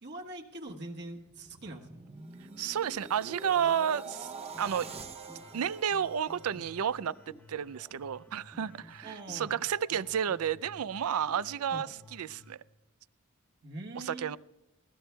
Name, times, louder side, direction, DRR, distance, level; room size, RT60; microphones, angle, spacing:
voice 1, 0.0-2.0 6.5-6.6 9.0-9.6 11.7-11.9 13.6-14.3, right 2 dB, 50° right, 1.4 m, -43 dB
sound 1, 1.2-7.3 7.7-8.0, right 4 dB, 25° right, 0.9 m, -46 dB
voice 2, 2.6-4.3 4.6-4.9 5.5-12.6 14.0-14.4, right 8 dB, 70° right, 0.4 m, -31 dB
sound 2, 4.5-12.5, left 1 dB, 10° left, 1.1 m, -54 dB
20.5 x 16.5 x 2.3 m
head